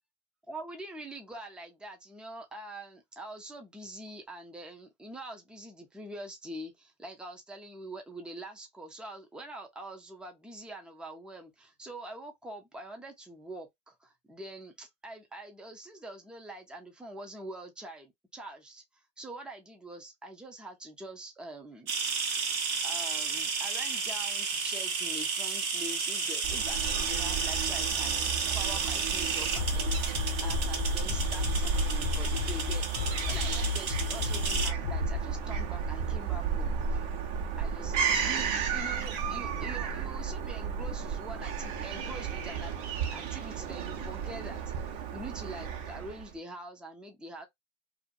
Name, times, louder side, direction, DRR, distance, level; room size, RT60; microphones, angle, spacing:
voice 1, 0.5-21.9 22.8-30.0 30.4-32.8 33.2-37.0 37.6-42.7 43.1-47.5, right 1 dB, ahead, 0.6 m, -44 dB
sound 1, 21.9-34.7, right 5 dB, 85° right, 1.0 m, -32 dB
Fowl / Gull seagull, 26.4-46.3, right 6 dB, 50° right, 1.0 m, -33 dB
Bass drum, 29.6-35.2, left 7 dB, 70° left, 0.9 m, -33 dB
2.6 x 2.5 x 2.4 m
hypercardioid pair, 95°, 41 cm